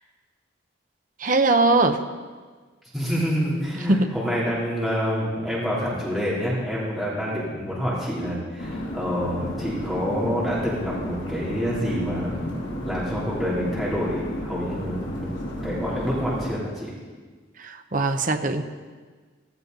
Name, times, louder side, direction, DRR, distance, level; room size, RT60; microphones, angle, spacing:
voice 1, 1.2-2.0 3.9-4.1 17.6-18.6, right 2 dB, 40° right, 7 dB, 0.8 m, -21 dB
voice 2, 2.9-12.5 12.9-16.9, equal, ahead, -9 dB, 3.4 m, -27 dB
sound 1, 8.6-16.5, equal, 60° left, 3.0 m, -33 dB
16.0 x 15.0 x 4.0 m, 1.5 s
head